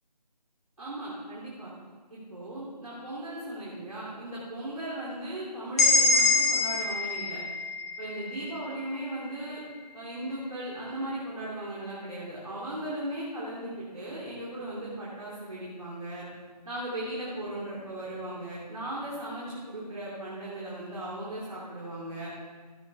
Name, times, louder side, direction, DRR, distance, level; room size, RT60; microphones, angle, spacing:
voice 1, 0.8-1.7 2.1-7.4 8.0-9.6 9.9-16.2 16.6-22.3, right 1 dB, 55° right, -7 dB, 3.1 m, -37 dB
sound 1, 5.8-9.6, left 3 dB, 25° left, 2.0 m, -26 dB
16.0 x 8.3 x 3.5 m, 1.5 s
figure-of-eight pair, 160°, 21 cm